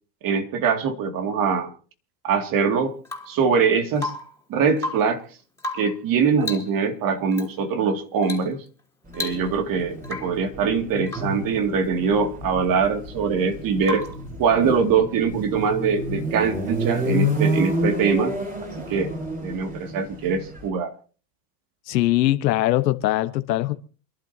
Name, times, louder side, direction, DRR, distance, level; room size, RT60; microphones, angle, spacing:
voice 1, 0.2-1.7 2.2-2.9 3.3-4.1 4.5-5.2 5.7-8.6 9.1-14.1 14.4-18.3 18.9-19.1 19.4-20.9, right 5 dB, 40° right, 2.5 m, -23 dB
Rain / Water tap faucet / Drip, 3.0-3.4 4.0-4.4 4.7-5.2 5.6-6.0 6.4-6.8 7.3-7.5 8.2-8.5 8.8-8.9 9.1-9.7 10.0-10.4 11.1-11.4 13.8-14.3 16.2-16.3, left 2 dB, 5° left, 3.7 m, -33 dB
sound 1, 9.1-20.7, equal, 15° right, 3.9 m, -30 dB
voice 2, 21.9-23.7, left 15 dB, 85° left, 1.4 m, -21 dB
28.5 x 12.0 x 2.9 m
supercardioid pair, 120°, 49 cm